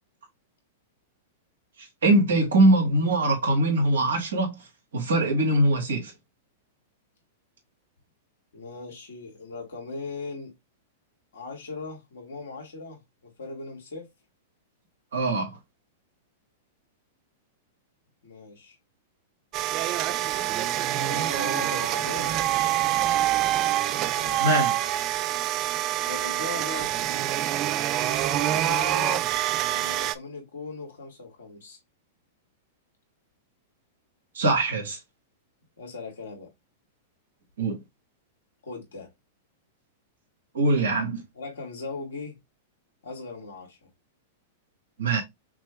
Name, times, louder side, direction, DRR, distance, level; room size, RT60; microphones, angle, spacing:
voice 1, 1.8-4.5 4.9-6.1 15.1-15.6 24.4-24.8 34.3-35.0 37.6-37.8 40.5-41.2 45.0-45.2, right 2 dB, 80° right, 1.8 m, -22 dB
voice 2, 8.5-10.5 11.3-13.0 13.4-14.1 18.2-18.8 20.9-22.3 24.1-24.4 26.0-27.0 28.3-29.3 29.7-31.8 35.8-36.5 38.6-39.1 41.3-42.4 43.0-43.9, left 3 dB, 80° left, 2.1 m, -38 dB
sound 1, 19.5-30.2, right 13 dB, 40° right, 0.4 m, -26 dB
5.9 x 2.3 x 3.2 m
hypercardioid pair, 115°, 0 cm